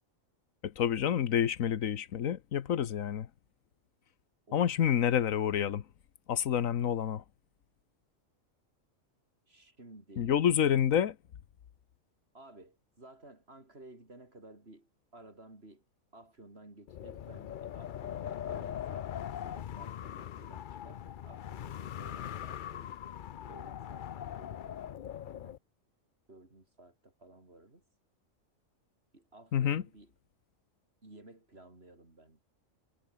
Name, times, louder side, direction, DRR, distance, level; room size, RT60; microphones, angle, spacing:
voice 1, 0.6-3.3 4.5-5.8 6.3-7.2 10.2-11.1 29.5-29.8, left 9 dB, 80° left, 1.4 m, -28 dB
voice 2, 9.5-10.5 10.8-11.0 12.3-15.8 16.1-23.1 23.4-25.6 26.3-27.8 29.1-30.1 31.0-32.4, right 2 dB, 50° right, 5.1 m, -55 dB
Wind, 16.9-25.6, left 10 dB, 60° left, 0.5 m, -41 dB
omnidirectional pair, 1.4 m